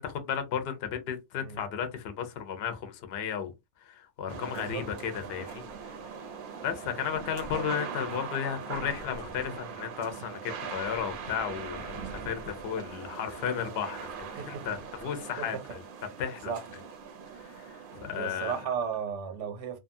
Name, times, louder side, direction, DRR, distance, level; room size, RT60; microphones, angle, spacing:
voice 1, 0.0-3.5 3.8-5.6 6.6-15.6 16.2-16.5 17.4-18.5, left 8 dB, 65° left, 0.8 m, -34 dB
sound 1, 4.3-18.6, right 6 dB, 55° right, 0.7 m, -41 dB
voice 2, 4.5-4.8 14.4-14.6 15.4-15.6 16.0-16.1 16.5-16.7 18.1-19.8, right 7 dB, 85° right, 1.0 m, -35 dB
2.7 x 2.3 x 2.6 m
omnidirectional pair, 1.2 m